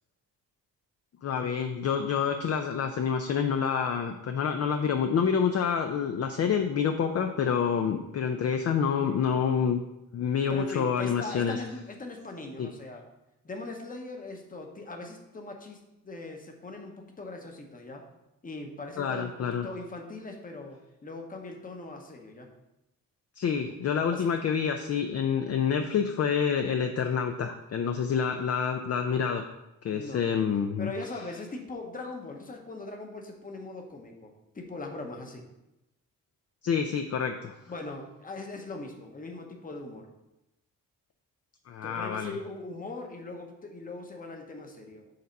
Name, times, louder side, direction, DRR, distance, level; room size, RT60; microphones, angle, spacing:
voice 1, 1.2-9.8 10.1-11.6 12.6-12.7 19.0-19.7 23.4-29.4 29.8-30.9 36.6-37.6 41.7-42.4, left 7 dB, 45° left, 6 dB, 0.4 m, -27 dB
voice 2, 10.5-13.0 13.4-18.1 18.4-22.5 24.1-24.3 29.9-30.2 30.8-35.5 37.7-40.1 41.8-45.1, left 2 dB, 25° left, 3 dB, 0.9 m, -40 dB
6.7 x 4.1 x 5.2 m, 0.93 s
wide cardioid pair, 170°, 35 cm